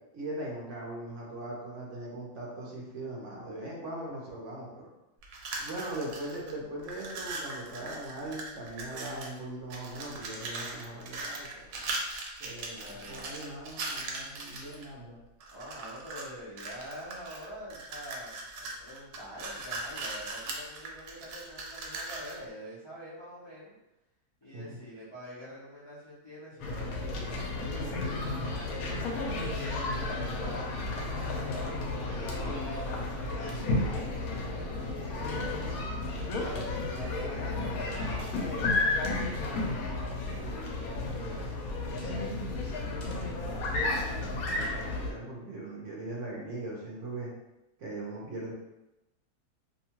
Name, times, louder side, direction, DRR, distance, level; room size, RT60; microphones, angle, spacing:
voice 1, 0.1-4.9 5.6-11.9 12.4-15.2 24.5-24.8 40.2-40.7 41.0-42.5 43.4-47.3 47.8-48.5, right 2 dB, 60° right, -4 dB, 0.9 m, -40 dB
sound 1, 5.2-6.5 6.8-9.4 9.7-14.8 15.4-16.3 16.6-22.4, right 3 dB, 85° right, 1.1 m, -39 dB
voice 2, 12.6-13.3 15.5-23.7 24.4-30.8 31.3-31.8 32.1-38.2, equal, 30° left, -11 dB, 0.4 m, -46 dB
sound 2, 26.6-45.1, left 2 dB, 75° left, 1.0 m, -32 dB
2.7 x 2.2 x 2.9 m, 0.93 s
omnidirectional pair, 1.6 m